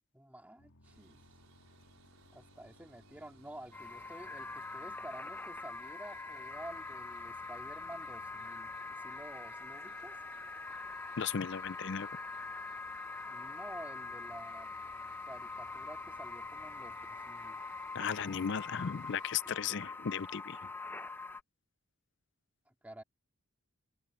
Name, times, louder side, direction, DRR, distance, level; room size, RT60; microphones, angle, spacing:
voice 1, 0.1-1.2 2.3-10.2 13.2-14.7 15.2-17.6 19.6-19.8 22.7-23.0, right 1 dB, 5° right, 2.7 m, -50 dB
sound 1, 0.6-18.9, left 1 dB, 80° left, 2.6 m, -66 dB
sound 2, 0.8-19.3, right 4 dB, 75° right, 4.8 m, -66 dB
sound 3, 3.7-21.4, left 3 dB, 10° left, 0.7 m, -44 dB
voice 2, 11.2-12.1 17.9-20.7, left 7 dB, 55° left, 0.4 m, -36 dB
head